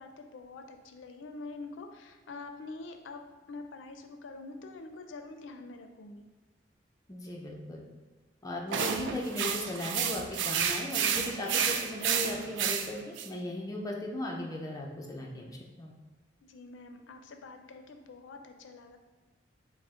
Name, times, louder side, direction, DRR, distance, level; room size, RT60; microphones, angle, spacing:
voice 1, 0.0-3.2 3.5-6.2 16.4-19.0, left 3 dB, 85° left, 6 dB, 0.4 m, -45 dB
voice 2, 7.1-7.9 8.4-13.0 13.2-15.9, left 1 dB, 20° left, -1 dB, 0.5 m, -37 dB
sound 1, 8.7-13.3, right 7 dB, 75° right, 0.3 m, -31 dB
4.9 x 2.1 x 3.6 m, 1.3 s
head